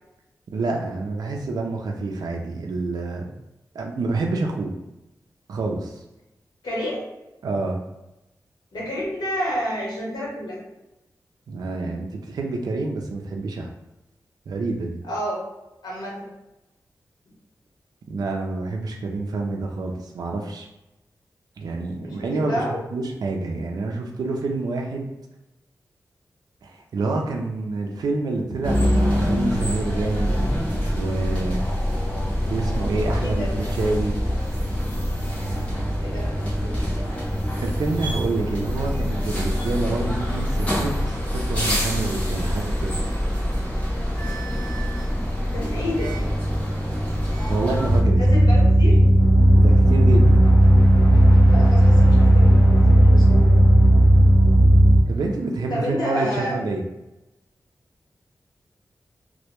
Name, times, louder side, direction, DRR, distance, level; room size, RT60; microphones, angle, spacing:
voice 1, 0.5-3.3 3.7-4.7 5.5-6.0 7.4-7.8 11.5-13.7 14.5-15.0 18.1-20.7 21.6-22.6 22.9-25.1 26.6-30.4 30.9-31.7 32.5-33.5 33.8-34.1 37.6-43.0 47.5-48.2 49.5-50.5 55.1-56.8, right 3 dB, 75° right, 1 dB, 0.3 m, -27 dB
voice 2, 6.6-7.1 8.7-10.6 15.0-15.4 15.8-16.3 22.0-22.8 33.1-33.5 36.0-36.9 45.5-46.2 48.1-49.0 51.5-53.6 55.7-56.6, equal, 85° left, -4 dB, 0.9 m, -30 dB
sound 1, 28.6-48.0, equal, 20° left, 0.7 m, -25 dB
sound 2, 47.9-55.0, right 1 dB, 60° left, 0.6 m, -14 dB
2.1 x 2.1 x 2.8 m, 0.96 s
wide cardioid pair, 135°, 7 cm